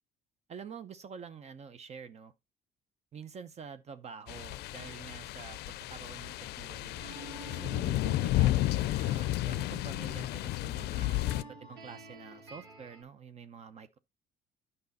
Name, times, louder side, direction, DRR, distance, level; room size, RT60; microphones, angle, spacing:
voice 1, 0.5-2.3 3.1-14.0, right 6 dB, 40° right, 0.7 m, -48 dB
sound 1, 4.3-11.4, left 15 dB, 75° left, 0.4 m, -32 dB
sound 2, 7.0-13.0, right 3 dB, 90° right, 4.3 m, -51 dB
9.4 x 5.4 x 4.1 m
cardioid pair, 110°, 17 cm